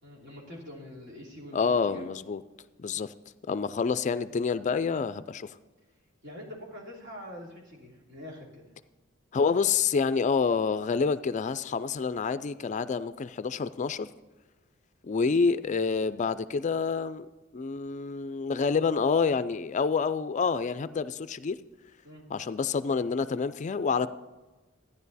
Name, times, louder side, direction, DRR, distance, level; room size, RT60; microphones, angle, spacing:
voice 1, 0.0-2.0 6.2-8.6 22.0-22.3, left 1 dB, 60° right, 3.0 m, -45 dB
voice 2, 1.5-2.4 2.8-3.1 3.5-5.6 9.3-14.1 15.0-17.3 17.5-21.6 22.3-24.1, left 5 dB, 35° left, 0.3 m, -28 dB
13.5 x 10.0 x 4.1 m
head